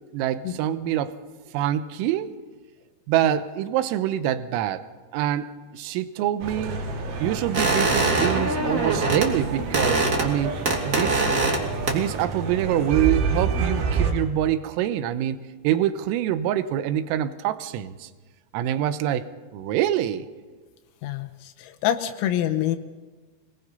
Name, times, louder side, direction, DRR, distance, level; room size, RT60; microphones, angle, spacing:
voice 1, 0.1-1.2 1.5-2.3 3.1-4.9 5.1-6.8 7.2-10.6 10.8-11.3 11.9-15.4 15.6-18.1 18.5-19.3 19.5-20.3, right 11 dB, 85° right, 12 dB, 3.6 m, -25 dB
sound 1, 6.4-14.1, right 5 dB, 70° right, 5.0 m, -29 dB
sound 2, 7.5-9.3 9.6-10.3 10.6-11.6 11.9-12.2, right 2 dB, 30° right, 1.6 m, -23 dB
voice 2, 21.0-22.8, left 11 dB, 90° left, 7 dB, 3.7 m, -26 dB
25.5 x 19.5 x 5.5 m, 1.3 s
omnidirectional pair, 5.9 m